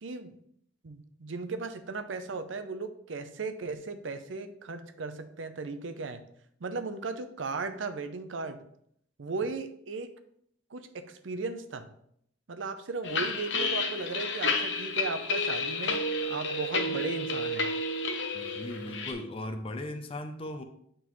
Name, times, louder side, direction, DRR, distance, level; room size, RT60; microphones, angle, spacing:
voice 1, 0.0-0.3 0.8-6.2 6.6-8.6 9.2-10.2 10.7-11.9 12.5-17.7, right 4 dB, 85° right, 9 dB, 0.6 m, -36 dB
sound 1, 13.0-19.1, left 2 dB, 65° left, 0.8 m, -31 dB
voice 2, 18.3-20.6, left 1 dB, 30° left, 6 dB, 0.5 m, -38 dB
9.1 x 3.8 x 3.1 m, 0.69 s
head